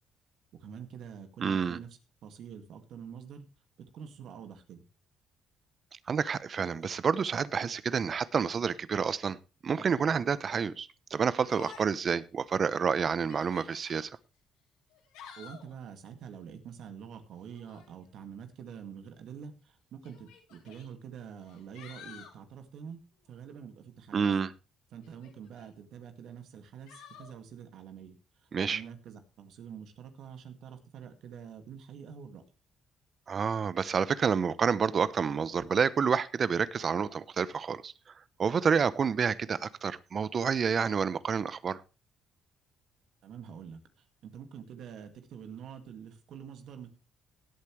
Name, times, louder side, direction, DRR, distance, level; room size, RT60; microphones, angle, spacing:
voice 1, 0.6-1.9 2.2-3.5 3.9-4.8 15.4-23.0 23.3-24.3 24.9-28.2 28.7-32.4 43.2-43.8 44.2-46.9, right 7 dB, 70° right, 2.0 m, -46 dB
voice 2, 1.4-1.8 6.1-9.4 9.6-14.1 24.1-24.5 28.5-28.8 33.3-37.9 38.4-41.8, right 6 dB, 50° right, 0.8 m, -29 dB
Yell, 11.4-12.1 12.5-12.6 13.2-14.1 14.9-15.7 17.5-17.9 19.1-19.2 20.0-20.9 21.4-22.4 25.0-25.7 26.9-27.3, left 7 dB, 90° left, 3.3 m, -51 dB
18.0 x 8.4 x 3.2 m
supercardioid pair, 65°, 0 cm